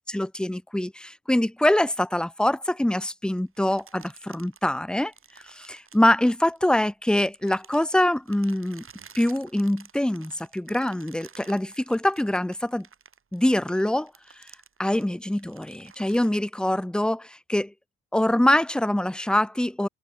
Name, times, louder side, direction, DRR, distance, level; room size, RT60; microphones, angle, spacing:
voice 1, 0.0-5.1 5.4-8.8 9.1-12.9 13.3-14.1 14.8-17.7 18.1-19.9, left 1 dB, 5° left, 0.6 m, -24 dB
sound 1, 3.5-6.8 7.2-16.4, right 6 dB, 45° right, 7.7 m, -52 dB
cardioid pair, 90°, 30 cm